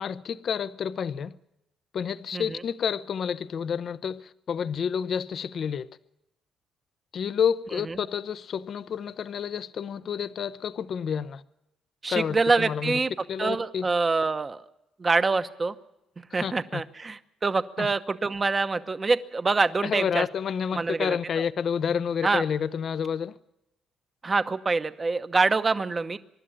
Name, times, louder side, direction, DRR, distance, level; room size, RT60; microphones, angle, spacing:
voice 1, 0.0-1.3 1.9-5.9 7.1-11.4 12.1-13.0 13.3-13.9 16.3-16.8 17.8-17.9 19.8-23.4, left 7 dB, 55° left, 0.6 m, -29 dB
voice 2, 12.0-13.1 13.4-14.6 15.0-15.7 16.3-20.2 20.7-21.2 22.2-22.4 24.2-26.2, right 3 dB, 30° right, 0.9 m, -25 dB
24.0 x 11.5 x 10.0 m
cardioid pair, 90°, 0 cm